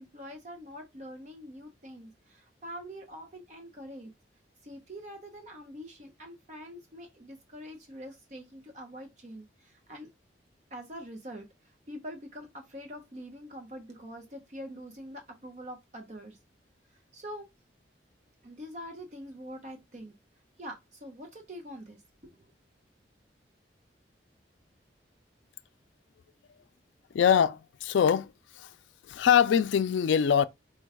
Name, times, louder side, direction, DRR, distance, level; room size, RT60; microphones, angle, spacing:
voice 1, 0.0-4.1 4.6-10.1 10.7-16.4 17.1-17.5 18.4-20.1 20.6-22.3, equal, 40° right, 0.7 m, -44 dB
voice 2, 27.1-28.7 29.1-30.5, left 8 dB, 85° left, 0.3 m, -23 dB
4.6 x 2.2 x 4.7 m
head